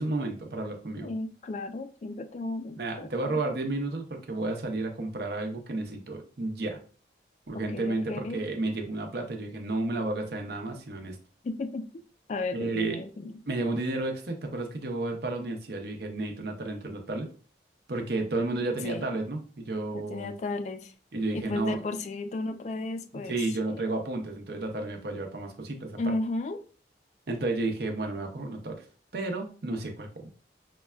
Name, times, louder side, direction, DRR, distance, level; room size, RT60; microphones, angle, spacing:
voice 1, 0.0-1.1 2.8-6.8 7.5-11.2 12.5-13.0 13.5-17.3 17.9-20.3 21.1-21.8 23.1-26.0 27.3-28.8 29.1-30.3, right 2 dB, 65° right, 3 dB, 0.7 m, -32 dB
voice 2, 1.0-3.4 7.5-8.4 11.4-11.9 12.3-13.3 18.8-19.1 19.9-20.9 21.3-23.4 23.7-23.8 26.0-26.6, left 2 dB, 40° left, 8 dB, 0.3 m, -34 dB
5.2 x 2.2 x 2.3 m, 0.40 s
head